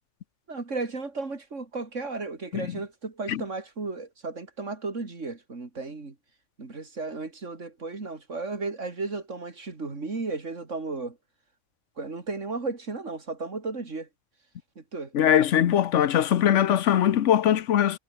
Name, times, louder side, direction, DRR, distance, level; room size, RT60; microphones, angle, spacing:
voice 1, 0.5-6.1 6.6-11.2 12.0-14.1 14.7-15.1, right 3 dB, 85° right, 3.4 m, -34 dB
voice 2, 15.1-18.0, left 10 dB, 75° left, 1.1 m, -21 dB
omnidirectional pair, 1.2 m